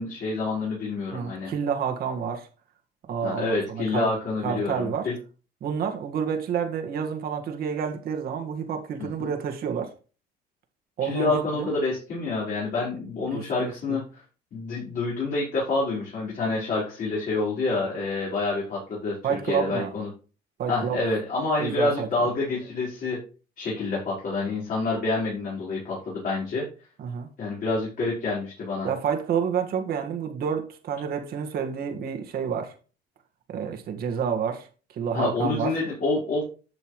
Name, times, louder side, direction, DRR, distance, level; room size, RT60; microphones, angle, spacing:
voice 1, 0.0-1.5 3.2-5.1 9.0-9.3 11.0-14.2 14.5-20.1 20.7-23.2 23.6-26.7 27.4-28.9 35.1-36.4, left 3 dB, 55° left, 4.6 m, -28 dB
voice 2, 1.1-2.5 3.1-4.1 4.4-5.1 5.6-9.9 11.0-11.7 13.3-14.0 19.2-19.9 20.6-21.0 21.6-22.3 27.0-27.3 28.8-32.7 33.5-34.7 34.9-35.7, right 7 dB, 65° right, 1.8 m, -29 dB
11.0 x 7.1 x 3.2 m
cardioid pair, 110°, 17 cm